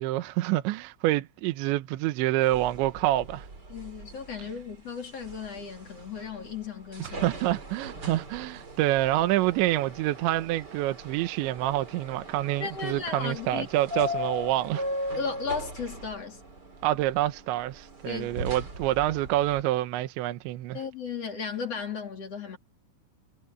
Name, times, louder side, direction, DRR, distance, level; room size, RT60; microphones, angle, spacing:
voice 1, 0.0-3.5 7.0-14.8 16.8-20.8, right 15 dB, 75° right, 3.0 m, -27 dB
sound 1, 2.4-19.6, left 1 dB, 25° right, 3.2 m, -39 dB
voice 2, 3.7-7.2 12.6-13.7 15.2-16.4 18.0-18.6 20.7-22.6, left 5 dB, 35° left, 3.1 m, -35 dB
omnidirectional pair, 5.9 m